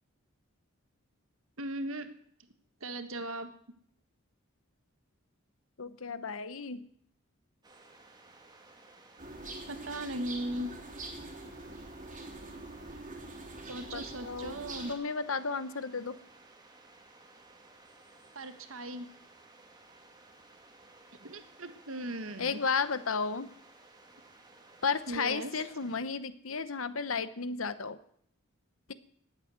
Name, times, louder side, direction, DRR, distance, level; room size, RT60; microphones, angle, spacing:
voice 1, 1.6-2.1 2.8-3.5 9.7-10.7 13.6-14.9 18.3-19.1 21.2-22.6 25.1-25.5, right 1 dB, 70° right, 9 dB, 1.6 m, -38 dB
voice 2, 5.8-6.8 13.9-14.6 14.9-16.2 22.4-23.5 24.8-28.0 28.9-29.0, left 5 dB, 70° left, 13 dB, 1.0 m, -33 dB
sound 1, 7.6-26.0, right 2 dB, 20° right, 2.1 m, -57 dB
sound 2, 9.2-14.9, right 2 dB, 40° right, 3.1 m, -44 dB
19.0 x 8.5 x 7.9 m, 0.66 s
head